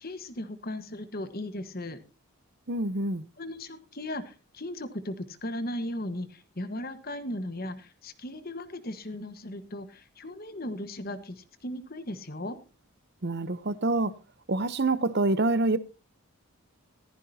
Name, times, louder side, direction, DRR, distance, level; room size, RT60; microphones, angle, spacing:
voice 1, 0.0-2.0 3.4-12.6, left 1 dB, 45° left, 1.4 m, -37 dB
voice 2, 2.7-3.2 13.2-14.1 14.5-15.8, right 2 dB, 50° right, 0.8 m, -26 dB
15.0 x 14.5 x 2.8 m
head